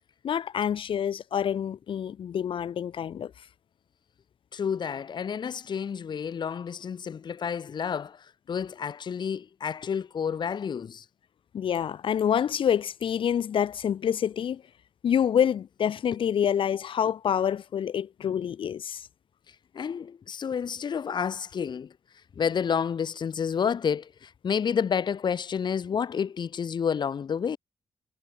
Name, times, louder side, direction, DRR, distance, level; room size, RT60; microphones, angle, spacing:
voice 1, 0.2-3.3 11.5-14.6 15.0-19.0, left 8 dB, 85° left, 1.2 m, -27 dB
voice 2, 4.5-11.0 19.7-21.9 22.4-27.6, left 7 dB, 60° left, 1.1 m, -30 dB
wide cardioid pair, 115°, 9 cm